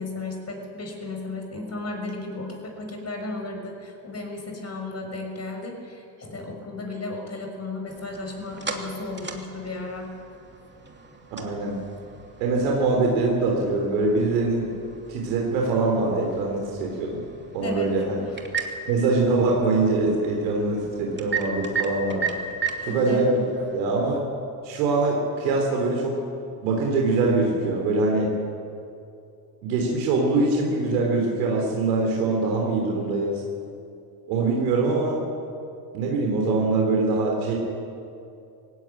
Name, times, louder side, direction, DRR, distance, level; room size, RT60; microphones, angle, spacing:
voice 1, 0.0-10.1 17.6-17.9 18.2-18.4 22.8-23.2, left 2 dB, 30° left, 2 dB, 5.9 m, -34 dB
sound 1, 7.9-24.2, right 5 dB, 20° right, 2.8 m, -37 dB
voice 2, 11.4-11.8 12.4-14.7 15.1-17.2 17.5-18.2 18.9-22.3 22.8-23.3 23.7-24.2 24.6-26.1 26.6-28.3 29.6-33.4 34.3-35.2 35.9-37.5, right 3 dB, 85° right, -1 dB, 3.7 m, -23 dB
18.5 x 17.0 x 9.2 m, 2.5 s
supercardioid pair, 80°, 50 cm